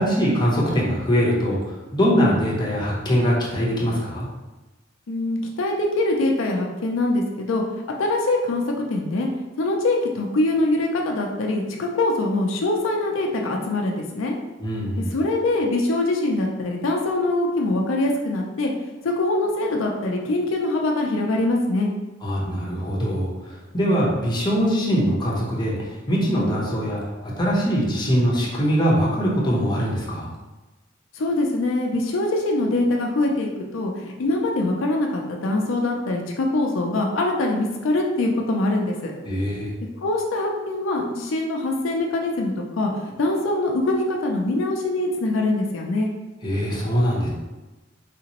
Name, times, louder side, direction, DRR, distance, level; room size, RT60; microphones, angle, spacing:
voice 1, 0.0-4.3 14.6-15.1 22.2-30.3 39.3-39.7 46.4-47.3, equal, 25° left, -4 dB, 0.8 m, -22 dB
voice 2, 5.1-8.6 8.9-9.3 9.6-14.4 15.1-18.7 19.0-21.9 31.1-39.1 40.0-42.9 43.2-46.1, left 2 dB, 80° left, 1 dB, 0.5 m, -23 dB
3.3 x 2.9 x 2.9 m, 1.1 s
head